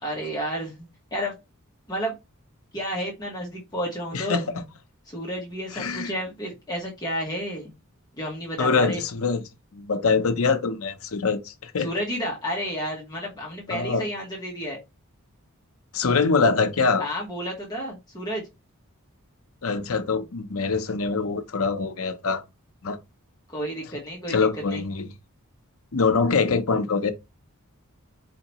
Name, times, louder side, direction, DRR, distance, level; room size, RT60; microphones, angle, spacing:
voice 1, 0.0-1.3 1.9-2.2 2.7-4.4 5.1-7.7 8.2-9.0 11.8-14.8 17.0-18.4 23.5-24.4 24.7-24.8, equal, 20° left, 1.1 m, -31 dB
voice 2, 4.1-4.6 5.7-6.1 8.6-9.4 9.7-11.9 13.7-14.1 15.9-17.0 19.6-22.4 22.8-23.0 24.3-25.1 25.9-27.1, left 4 dB, 70° left, 0.7 m, -24 dB
4.4 x 2.8 x 2.9 m
head